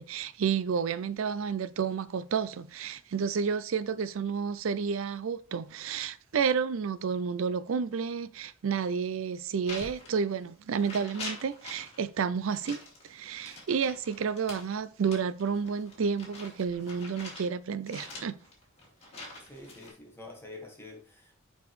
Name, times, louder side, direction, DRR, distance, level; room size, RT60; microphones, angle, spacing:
voice 1, 0.0-12.8 13.0-18.4, right 6 dB, 70° right, 0.4 m, -31 dB
sound 1, 9.7-10.5 10.8-12.1 12.5-17.5 17.9-19.9, left 2 dB, 30° left, 2.4 m, -44 dB
voice 2, 19.4-21.4, left 2 dB, 10° left, 1.6 m, -47 dB
6.9 x 5.1 x 3.2 m
head